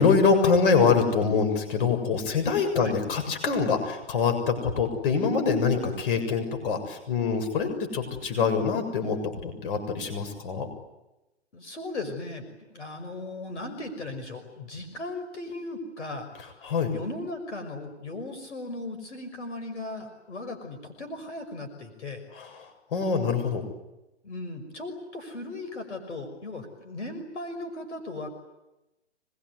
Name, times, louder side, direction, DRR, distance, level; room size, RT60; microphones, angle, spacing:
voice 1, 0.0-10.7 16.6-16.9 22.4-22.5 22.9-23.6, left 5 dB, 50° left, 6 dB, 7.1 m, -24 dB
voice 2, 11.5-22.2 24.2-28.3, left 2 dB, 75° left, 7 dB, 6.0 m, -37 dB
25.5 x 22.0 x 9.7 m, 0.97 s
hypercardioid pair, 135°, 35 cm